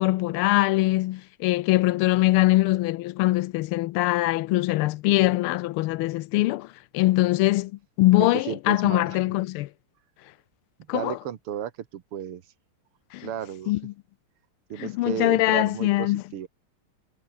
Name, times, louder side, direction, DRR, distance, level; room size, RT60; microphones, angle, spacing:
voice 1, 0.0-7.7 8.0-9.7 10.9-11.2 13.1-13.3 13.7-13.9 14.8-16.2, left 18 dB, 80° left, 1.4 m, -22 dB
voice 2, 8.2-9.2 10.9-12.4 13.2-13.7 14.7-16.5, right 10 dB, 85° right, 2.3 m, -33 dB
omnidirectional pair, 2.4 m